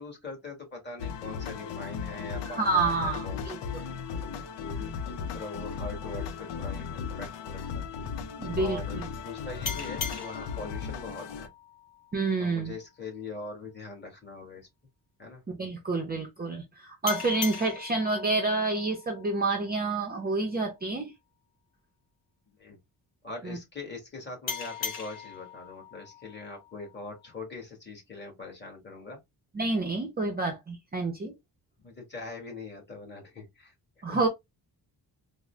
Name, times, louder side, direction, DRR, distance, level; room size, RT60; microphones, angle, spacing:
voice 1, 0.0-3.7 4.1-4.9 5.3-7.9 8.5-11.5 12.4-14.7 15.2-15.4 22.6-22.8 23.2-29.2 31.8-33.7 34.0-34.3, left 3 dB, 25° left, 1.4 m, -42 dB
sound 1, 1.0-11.5, left 6 dB, 80° left, 0.7 m, -36 dB
voice 2, 2.4-3.8 8.4-8.8 12.1-12.7 15.5-21.1 23.4-23.6 29.5-31.3 34.0-34.3, right 3 dB, 25° right, 0.5 m, -28 dB
sound 2, 9.6-12.9 17.1-20.3 24.5-27.4, left 6 dB, 60° left, 1.2 m, -40 dB
3.7 x 2.0 x 3.1 m
wide cardioid pair, 175°, 41 cm